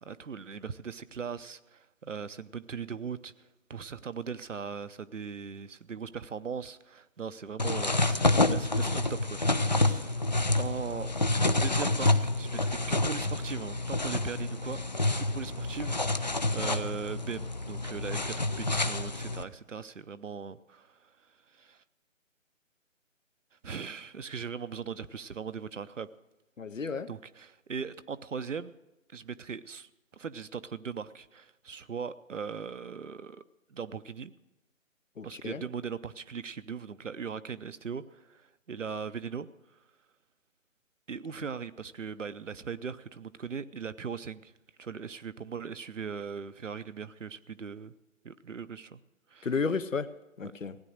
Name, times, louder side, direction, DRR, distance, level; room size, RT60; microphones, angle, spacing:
voice 1, 0.0-3.3 3.7-10.3 10.6-11.1 11.4-14.8 15.2-21.1 21.5-21.8 23.6-26.1 27.1-28.7 29.1-33.4 33.7-34.3 35.2-39.5 41.1-44.5 44.8-47.9 48.2-49.0 49.3-49.5 50.4-50.5, right 6 dB, 65° right, 13 dB, 0.8 m, -39 dB
sound 1, 7.6-19.4, left 2 dB, 35° left, 0.5 m, -28 dB
voice 2, 26.6-27.1 35.2-35.6 49.4-50.1 50.4-50.8, left 5 dB, 75° left, 14 dB, 1.0 m, -32 dB
16.5 x 9.9 x 6.5 m, 1.0 s
figure-of-eight pair, 150°, 40 cm